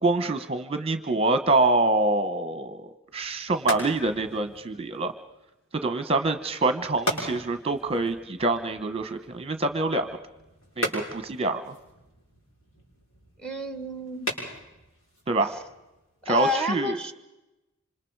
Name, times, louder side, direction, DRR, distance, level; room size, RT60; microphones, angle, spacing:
voice 1, 0.0-2.9 3.1-5.1 5.8-10.1 10.8-11.7 15.3-15.5 16.3-17.0, right 2 dB, 25° right, 9 dB, 1.0 m, -25 dB
sound 1, 3.1-16.6, equal, 65° left, 7.3 m, -38 dB
voice 2, 13.4-14.3 16.3-17.1, left 2 dB, 5° left, 9 dB, 1.5 m, -29 dB
27.0 x 26.5 x 4.8 m, 0.98 s
head